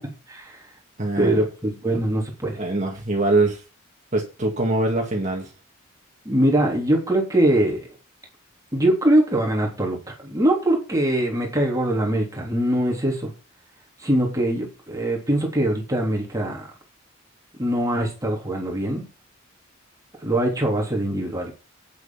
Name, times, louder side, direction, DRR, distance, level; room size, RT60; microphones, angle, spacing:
voice 1, 0.3-0.6 1.2-2.6 6.3-7.9 8.7-13.3 14.0-16.7 17.6-19.0 20.2-21.5, right 1 dB, 15° right, 0 dB, 3.4 m, -22 dB
voice 2, 1.0-1.4 1.9-2.0 2.6-3.6 4.1-5.5, right 2 dB, 35° right, 0 dB, 2.3 m, -23 dB
9.7 x 7.9 x 5.9 m, 0.31 s
head